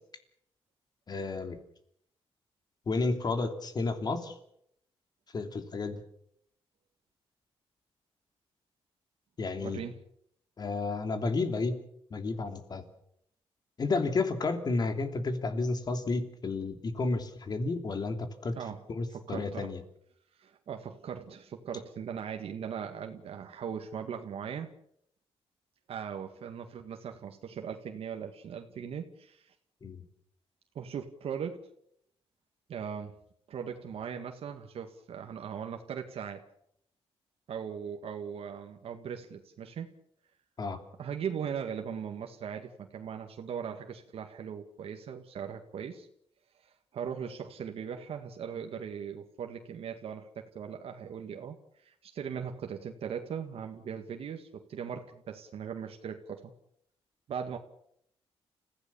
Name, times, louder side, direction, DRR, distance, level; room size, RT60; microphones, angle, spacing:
voice 1, 1.1-1.6 2.9-4.3 5.3-6.0 9.4-9.8 10.6-11.8 12.1-12.8 13.8-18.5 18.9-19.8 29.8-30.0 40.6-40.8, left 3 dB, 40° left, 7 dB, 3.1 m, -31 dB
voice 2, 9.5-10.0 18.6-18.8 19.1-19.7 20.4-24.7 25.9-29.5 30.8-31.6 32.7-33.1 33.5-36.4 37.5-39.9 41.0-46.1 46.6-56.5 57.3-57.6, right 7 dB, 70° right, 4 dB, 1.9 m, -39 dB
29.5 x 16.0 x 7.1 m, 0.73 s
cardioid pair, 120°, 10 cm